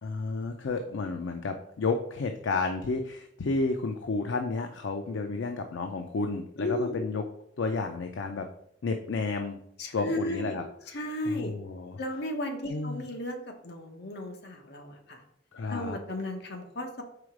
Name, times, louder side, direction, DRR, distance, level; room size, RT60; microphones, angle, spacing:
voice 1, 0.0-7.2 7.6-8.5 8.8-9.6 9.9-10.6 11.3-12.0 12.7-13.1 15.5-16.0, left 3 dB, 85° left, 5 dB, 0.5 m, -31 dB
voice 2, 6.6-7.0 9.8-10.6 10.9-11.6 12.0-15.2 15.7-17.0, left 1 dB, 65° left, 3 dB, 1.0 m, -34 dB
4.9 x 3.9 x 4.8 m, 0.72 s
head